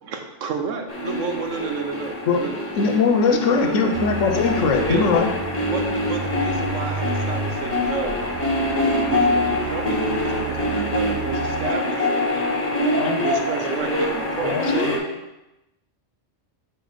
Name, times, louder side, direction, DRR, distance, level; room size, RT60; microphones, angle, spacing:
voice 1, 0.0-2.6 3.3-3.9 4.8-5.0 5.7-8.2 8.6-12.6 13.2-14.5, right 5 dB, 85° right, 4 dB, 1.2 m, -31 dB
sound 1, 0.9-15.0, left 1 dB, 30° left, 1.4 m, -25 dB
voice 2, 2.8-5.3, left 5 dB, 90° left, 5 dB, 1.2 m, -20 dB
sound 2, 3.9-11.7, right 4 dB, 35° right, 0.5 m, -33 dB
Brass instrument, 7.3-11.8, equal, 20° right, 1.2 m, -39 dB
voice 3, 14.4-15.1, left 6 dB, 55° left, 5 dB, 0.9 m, -31 dB
6.4 x 4.2 x 5.1 m, 0.94 s
omnidirectional pair, 1.3 m